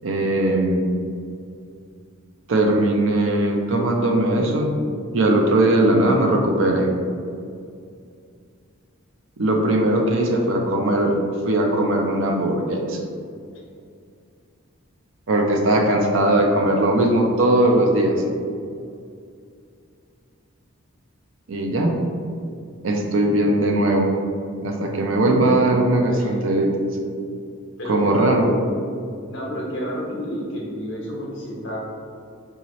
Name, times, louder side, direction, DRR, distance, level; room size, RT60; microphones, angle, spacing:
voice 1, 0.0-0.8 2.5-4.7 5.1-6.9 9.4-11.2 11.4-13.0 15.3-18.2 21.5-22.0 22.8-24.1 24.6-26.7 27.9-28.5, right 1 dB, 65° right, 1 dB, 0.5 m, -19 dB
voice 2, 26.0-26.3 27.8-28.6 29.3-31.8, equal, 60° left, -3 dB, 1.0 m, -30 dB
4.6 x 2.8 x 3.0 m, 2.3 s
head